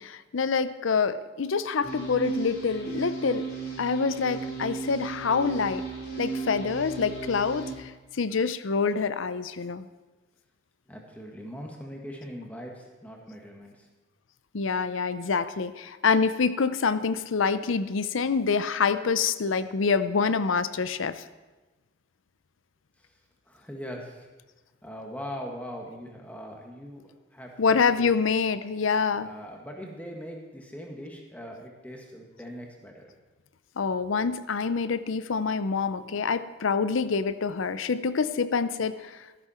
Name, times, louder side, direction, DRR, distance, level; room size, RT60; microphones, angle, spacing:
voice 1, 0.0-3.5 3.8-5.8 6.2-9.9 14.5-21.2 27.6-29.3 33.8-39.2, left 5 dB, 80° left, 14 dB, 0.6 m, -26 dB
sound 1, 1.8-7.7, right 4 dB, 50° left, 3.5 m, -35 dB
voice 2, 10.9-13.9 23.5-24.3 24.8-27.0 27.3-28.1 29.2-33.0, equal, 5° left, 0 dB, 1.7 m, -41 dB
13.5 x 12.0 x 4.4 m, 1.2 s
head